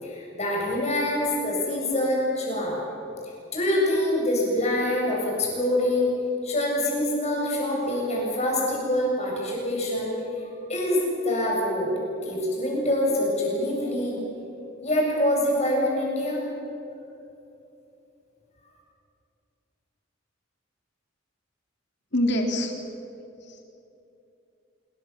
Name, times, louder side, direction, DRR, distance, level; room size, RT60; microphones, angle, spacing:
voice 1, 0.0-2.8 3.5-6.1 6.4-10.1 10.7-11.9 12.2-14.2 14.8-16.4, left 1 dB, 35° left, -2 dB, 7.7 m, -25 dB
voice 2, 22.1-22.7 23.4-23.8, left 1 dB, 60° left, 3 dB, 3.4 m, -26 dB
26.5 x 23.0 x 7.5 m, 2.8 s
head